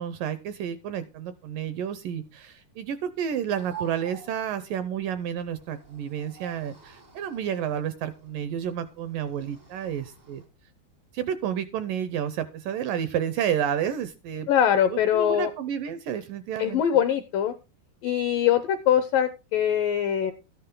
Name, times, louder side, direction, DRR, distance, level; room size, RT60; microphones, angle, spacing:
voice 1, 0.0-10.4 11.1-14.5 14.9-16.8, right 9 dB, 80° right, 12 dB, 2.0 m, -30 dB
sound 1, 3.5-10.4, right 6 dB, 50° right, 0.4 m, -48 dB
voice 2, 14.5-15.5 16.6-17.5 18.0-20.3, left 9 dB, 80° left, 11 dB, 2.0 m, -23 dB
13.0 x 10.0 x 3.8 m, 0.29 s
omnidirectional pair, 4.7 m